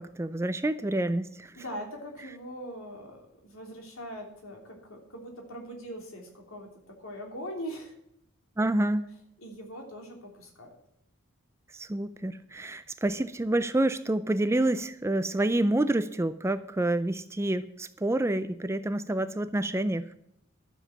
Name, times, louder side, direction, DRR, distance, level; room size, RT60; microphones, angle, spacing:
voice 1, 0.0-1.5 8.6-9.0 11.7-20.1, right 1 dB, 10° right, 13 dB, 0.4 m, -28 dB
voice 2, 1.5-7.9 9.4-10.7, equal, 75° left, 2 dB, 3.2 m, -41 dB
12.5 x 7.2 x 7.2 m, 0.77 s
head